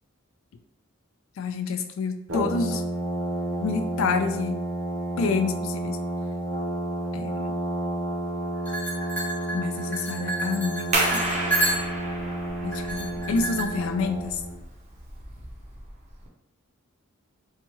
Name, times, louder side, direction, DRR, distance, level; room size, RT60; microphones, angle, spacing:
voice 1, 1.4-2.8 3.6-4.6 5.2-6.0 7.1-7.5 9.5-11.2 12.6-14.4, left 4 dB, 70° left, 9 dB, 0.3 m, -28 dB
Brass instrument, 2.3-14.6, right 1 dB, 70° right, 0.7 m, -31 dB
sound 1, 8.7-12.1 12.7-13.6, right 2 dB, 10° left, 0.6 m, -30 dB
sound 2, 10.9-16.3, right 2 dB, 35° right, 0.5 m, -31 dB
2.8 x 2.2 x 2.9 m, 0.82 s
head